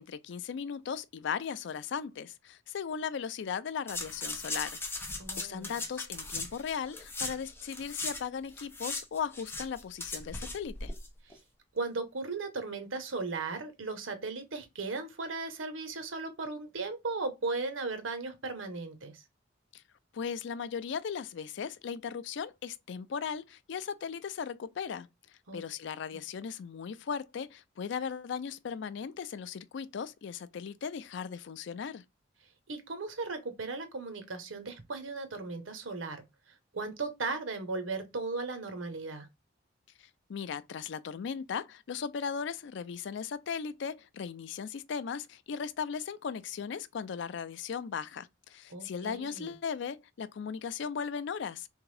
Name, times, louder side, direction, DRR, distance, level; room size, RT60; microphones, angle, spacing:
voice 1, 0.0-10.9 19.7-19.8 20.1-25.1 25.5-32.0 40.3-51.7, left 6 dB, 65° left, 0.4 m, -37 dB
sound 1, 3.9-8.2 8.5-11.1 11.3-11.4, left 3 dB, 10° left, 0.8 m, -38 dB
voice 2, 5.2-5.8 11.7-19.2 25.5-25.6 26.1-26.2 32.7-36.2 36.7-39.3 48.7-49.5, right 3 dB, 80° right, 1.0 m, -36 dB
3.6 x 3.5 x 3.3 m
head